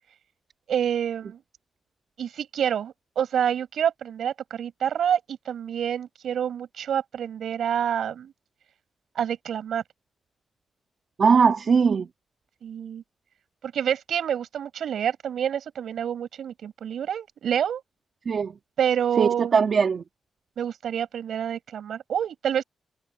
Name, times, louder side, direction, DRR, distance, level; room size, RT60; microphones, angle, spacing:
voice 1, 0.7-1.4 2.2-8.3 9.2-9.8 12.6-13.0 13.6-17.8 18.8-19.6 20.6-22.6, right 9 dB, 80° right, 6.8 m, -27 dB
voice 2, 11.2-12.1 18.3-18.5 19.2-20.0, right 6 dB, 55° right, 2.0 m, -20 dB
cardioid pair, 90°, 0 cm